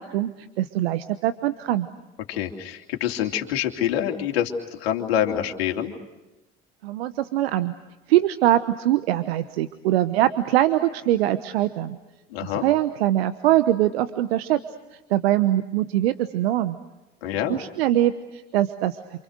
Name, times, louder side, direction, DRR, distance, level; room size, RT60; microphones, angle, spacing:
voice 1, 0.0-1.9 6.8-7.7 8.1-12.0 12.4-14.6 15.1-16.8 17.5-19.0, right 13 dB, 75° right, 13 dB, 1.1 m, -22 dB
voice 2, 2.3-5.9 12.3-12.6 17.2-17.6, left 10 dB, 75° left, 3 dB, 3.0 m, -26 dB
28.5 x 27.0 x 6.6 m, 1.1 s
hypercardioid pair, 60°, 31 cm